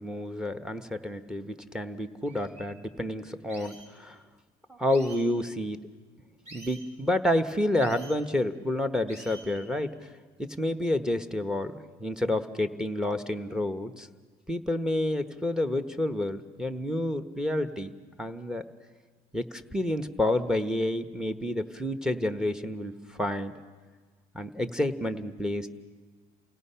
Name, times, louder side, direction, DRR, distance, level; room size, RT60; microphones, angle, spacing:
voice 1, 0.0-4.2 4.7-5.8 6.5-9.9 10.4-14.1 14.5-17.9 18.2-18.6 19.3-23.5 24.3-25.7, left 1 dB, 5° right, 8 dB, 1.0 m, -29 dB
sound 1, 1.8-1.9 2.3-2.6 3.5-3.9 4.9-5.3 6.4-6.9 7.8-8.2 9.1-9.6, right 2 dB, 40° right, 4.6 m, -48 dB
28.5 x 17.5 x 5.7 m, 1.4 s
cardioid pair, 110°, 17 cm